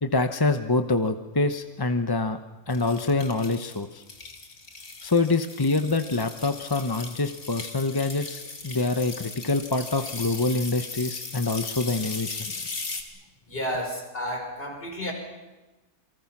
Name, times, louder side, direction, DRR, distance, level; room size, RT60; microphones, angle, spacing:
voice 1, 0.0-2.4 2.7-4.0 5.0-12.7, left 3 dB, 20° left, 8 dB, 0.7 m, -26 dB
sound 1, 2.7-13.0, left 3 dB, 60° left, 2.7 m, -38 dB
voice 2, 13.5-15.1, equal, 40° left, 2 dB, 5.5 m, -31 dB
28.0 x 23.5 x 6.0 m, 1.2 s
omnidirectional pair, 1.6 m